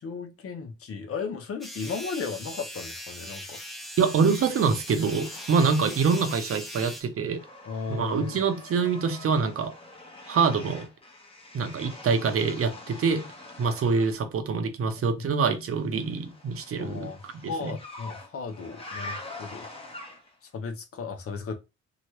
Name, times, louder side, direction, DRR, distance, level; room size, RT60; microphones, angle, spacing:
voice 1, 0.0-3.6 7.7-8.4 15.2-15.3 16.8-19.7 20.5-21.5, left 5 dB, 50° left, 0.8 m, -35 dB
sound 1, 1.6-7.0, equal, ahead, 0.5 m, -40 dB
sound 2, 3.6-6.6 6.9-14.2 15.8-20.5, left 2 dB, 20° left, 0.9 m, -45 dB
voice 2, 4.0-7.4 7.9-9.7 10.3-10.9 11.5-13.3 13.6-17.7, right 5 dB, 50° right, 0.7 m, -25 dB
2.9 x 2.4 x 3.0 m
cardioid pair, 90°, 30 cm